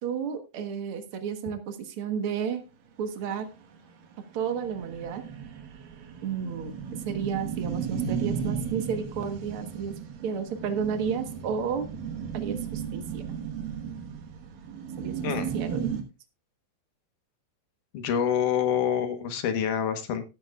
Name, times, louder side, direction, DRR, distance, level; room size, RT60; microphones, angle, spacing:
voice 1, 0.0-2.6 3.0-3.5 4.3-5.2 6.2-6.8 7.0-9.9 10.2-11.9 12.3-13.2 15.0-15.2 15.5-15.9, right 7 dB, 55° right, 8 dB, 1.6 m, -32 dB
sound 1, 3.3-3.4 3.7-3.8 4.1-4.2 4.5-16.0, right 7 dB, 75° right, 3.1 m, -35 dB
voice 2, 17.9-20.2, left 8 dB, 70° left, 7 dB, 2.5 m, -26 dB
17.5 x 8.8 x 2.4 m, 0.28 s
omnidirectional pair, 4.1 m